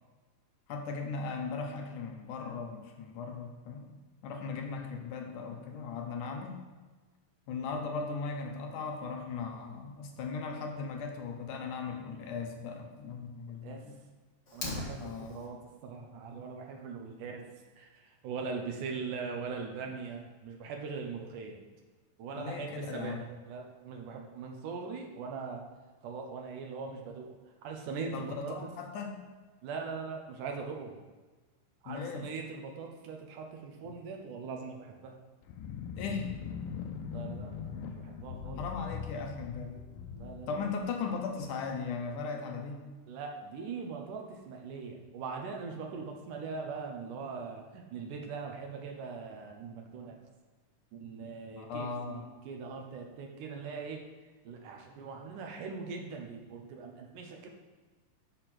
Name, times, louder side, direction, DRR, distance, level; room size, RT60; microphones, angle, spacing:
voice 1, 0.7-3.9 4.2-6.6 7.5-14.0 15.0-15.4 22.4-23.2 28.1-29.1 31.9-32.3 36.0-36.3 38.6-39.9 40.5-42.9 51.6-52.3, left 5 dB, 75° left, 3 dB, 2.3 m, -38 dB
Fire, 14.5-15.5, left 2 dB, 35° left, 1.3 m, -39 dB
voice 2, 14.5-21.6 22.2-25.6 26.0-28.6 29.6-31.0 31.8-35.2 37.1-38.6 40.1-40.7 43.1-50.2 50.9-54.1 54.4-57.5, right 5 dB, 75° right, 2 dB, 2.4 m, -41 dB
sound 1, 35.4-41.4, left 6 dB, 90° left, 2.3 m, -41 dB
6.9 x 6.4 x 6.0 m, 1.3 s
omnidirectional pair, 3.9 m